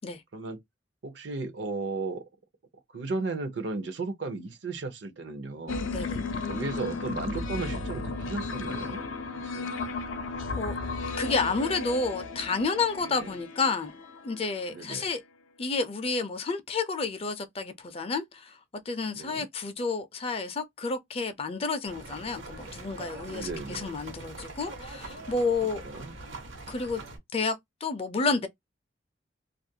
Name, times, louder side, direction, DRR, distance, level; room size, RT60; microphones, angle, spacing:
voice 1, 1.0-2.2 2.9-5.8 6.5-9.0 9.3-9.7 13.0-13.3 14.7-15.1 19.1-19.5 23.3-24.0 25.8-26.1, right 3 dB, 65° right, 0.6 m, -35 dB
sound 1, 5.7-14.7, left 3 dB, 90° left, 0.6 m, -34 dB
voice 2, 11.2-13.9 14.2-15.2 15.6-18.6 18.9-25.8 26.7-27.0 27.3-27.6 27.8-28.5, left 4 dB, 30° left, 0.4 m, -30 dB
sound 2, 21.9-27.2, right 2 dB, 85° right, 1.0 m, -43 dB
2.4 x 2.2 x 2.6 m
head